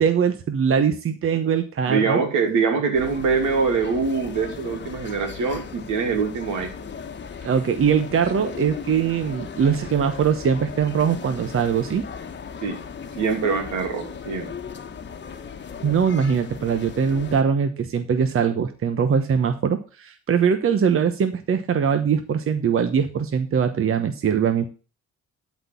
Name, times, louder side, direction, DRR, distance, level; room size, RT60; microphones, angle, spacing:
voice 1, 0.0-2.2 7.4-12.0 15.8-24.7, right 7 dB, 45° right, 8 dB, 1.0 m, -22 dB
voice 2, 1.9-6.7 12.6-12.8 13.2-14.5, right 5 dB, 80° right, 4 dB, 2.8 m, -24 dB
Barcelona street restaurants near Sagrada Família, 2.9-17.4, left 6 dB, 35° left, 1.2 m, -37 dB
12.0 x 4.3 x 7.0 m, 0.36 s
cardioid pair, 90°, 30 cm